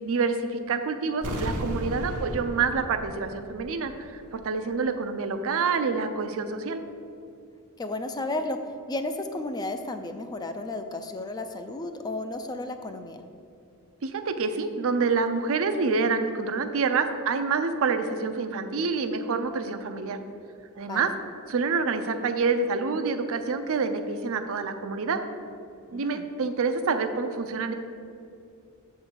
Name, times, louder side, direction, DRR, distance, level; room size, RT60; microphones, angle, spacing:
voice 1, 0.0-6.8 14.0-20.2 20.8-21.1 21.5-25.2 25.9-27.7, right 4 dB, 65° right, 8 dB, 0.5 m, -27 dB
sound 1, 1.2-4.1 4.4-4.5, equal, 80° right, 0.9 m, -34 dB
voice 2, 7.8-8.6 8.9-13.2 20.9-21.1 25.9-26.3, left 2 dB, 20° left, 7 dB, 0.3 m, -33 dB
6.8 x 3.7 x 6.3 m, 2.5 s
head